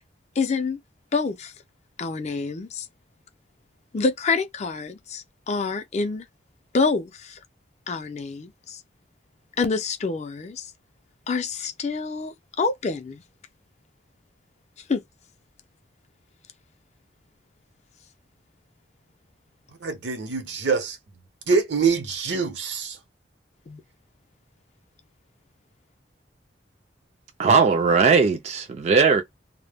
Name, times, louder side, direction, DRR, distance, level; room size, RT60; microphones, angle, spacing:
voice 1, 0.4-0.8 1.1-1.5 2.0-2.9 3.9-6.3 6.7-7.4 7.9-8.8 9.6-10.7 11.3-13.2 14.9-15.0 23.7-23.8, left 4 dB, 35° left, 0.4 m, -27 dB
voice 2, 19.8-21.0 21.5-23.0, right 5 dB, 75° right, 0.7 m, -24 dB
voice 3, 27.4-29.2, right 5 dB, 35° right, 0.3 m, -18 dB
2.1 x 2.0 x 3.3 m
head